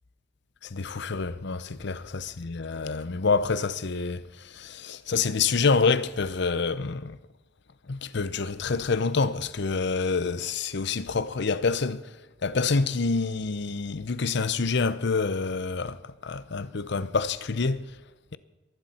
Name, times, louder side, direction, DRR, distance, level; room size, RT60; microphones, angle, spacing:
voice 1, 0.6-7.2 7.9-12.1 12.4-17.9, left 4 dB, 60° left, 0.7 m, -27 dB
22.5 x 12.0 x 4.3 m
head